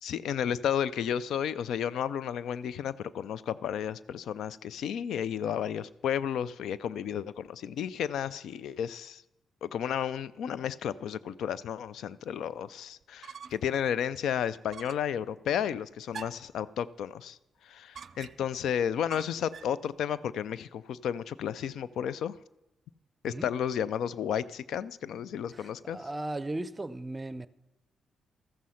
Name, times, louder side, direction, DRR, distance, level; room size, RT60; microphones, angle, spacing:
voice 1, 0.0-9.2 9.6-17.4 17.6-22.4 23.2-26.0, left 9 dB, 80° left, 19 dB, 0.4 m, -32 dB
sound 1, 13.0-13.8 14.1-14.2 14.7-15.2 16.1-16.6 17.9-18.6 19.1-19.8, right 6 dB, 60° right, 0.5 m, -45 dB
voice 2, 25.5-27.5, right 2 dB, 25° right, 16 dB, 0.7 m, -37 dB
14.0 x 7.5 x 5.7 m, 0.96 s
supercardioid pair, 55°, 0 cm